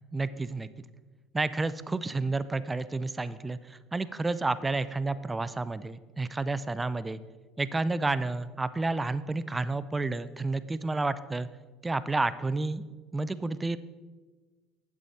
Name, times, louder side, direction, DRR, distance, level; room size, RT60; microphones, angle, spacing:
voice 1, 0.1-0.7 1.3-7.2 7.6-11.5 11.8-12.8 13.1-13.8, right 3 dB, 15° right, 15 dB, 0.4 m, -30 dB
8.3 x 7.5 x 4.2 m, 1.3 s
hypercardioid pair, 85°, 0 cm